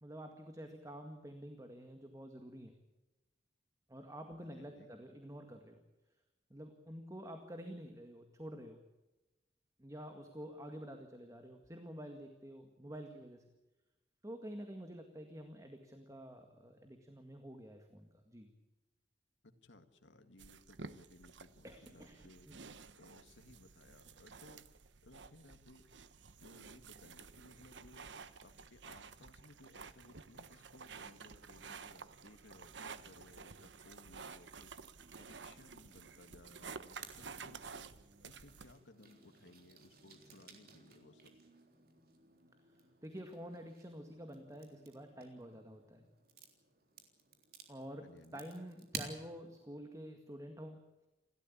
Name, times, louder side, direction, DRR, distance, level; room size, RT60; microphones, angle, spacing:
voice 1, 0.0-2.7 3.9-5.8 6.5-8.8 9.8-13.4 14.2-18.5 21.6-22.2 22.5-22.6 43.0-46.1 47.7-50.9, equal, 20° right, 5 dB, 1.9 m, -49 dB
voice 2, 4.4-4.9 19.4-22.5 22.9-24.7 25.0-25.9 26.4-28.1 28.4-34.7 35.2-37.9 38.2-41.4 48.0-48.5, left 1 dB, 80° left, 7 dB, 2.1 m, -60 dB
sound 1, 20.4-38.7, right 5 dB, 75° right, 1.0 m, -52 dB
sound 2, 35.0-49.7, right 5 dB, 55° right, 3.6 m, -55 dB
29.0 x 13.5 x 8.6 m, 1.1 s
head